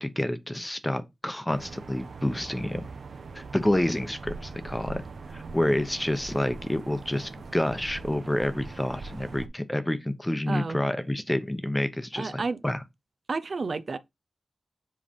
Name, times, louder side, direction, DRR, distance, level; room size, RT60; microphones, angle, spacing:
voice 1, 0.0-2.9 3.3-5.0 5.3-12.8, left 1 dB, 10° left, 0.8 m, -28 dB
sound 1, 1.5-9.5, right 4 dB, 75° right, 0.9 m, -41 dB
voice 2, 10.5-10.8 12.1-12.6 13.3-14.0, right 4 dB, 55° right, 0.5 m, -31 dB
7.5 x 3.3 x 5.2 m
wide cardioid pair, 105°, 0 cm